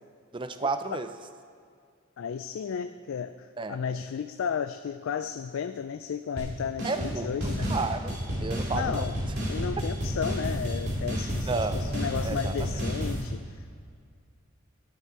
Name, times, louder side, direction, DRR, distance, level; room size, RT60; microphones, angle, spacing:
voice 1, 0.3-1.1 3.6-3.8 6.8-7.3 7.7-9.1 11.5-12.0 12.2-12.5, right 3 dB, 25° right, 10 dB, 0.5 m, -32 dB
voice 2, 2.2-7.7 8.7-9.2 9.5-13.7, left 7 dB, 70° left, 10 dB, 0.3 m, -33 dB
sound 1, 6.4-6.5 6.8-7.1 7.4-13.2, equal, 55° right, 2.4 m, -31 dB
11.0 x 10.0 x 4.7 m, 2.2 s
head